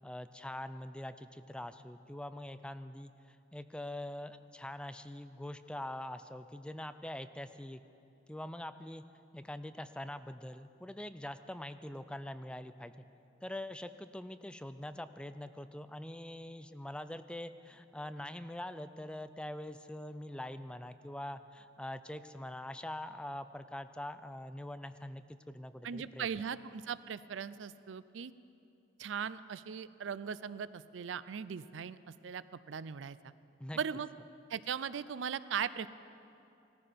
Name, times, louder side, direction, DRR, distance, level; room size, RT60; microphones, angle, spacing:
voice 1, 0.0-7.8 8.3-9.0 9.3-13.0 13.4-26.3 33.6-33.8, left 1 dB, 5° left, 11 dB, 0.4 m, -44 dB
voice 2, 25.8-28.3 29.0-32.0 32.2-33.3 33.7-34.1 34.5-35.9, right 7 dB, 85° right, 16 dB, 0.4 m, -39 dB
18.0 x 14.5 x 5.1 m, 2.7 s
head